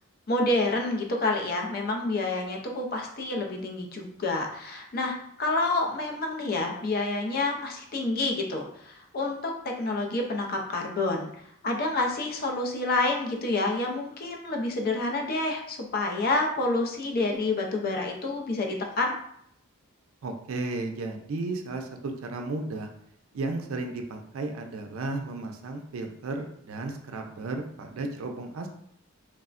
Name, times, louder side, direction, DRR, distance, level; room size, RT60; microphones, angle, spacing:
voice 1, 0.3-11.3 11.6-19.1, left 2 dB, 45° left, 1 dB, 0.4 m, -28 dB
voice 2, 20.2-22.9 23.3-28.7, right 2 dB, 80° right, 4 dB, 0.4 m, -34 dB
3.2 x 2.0 x 2.4 m, 0.70 s
head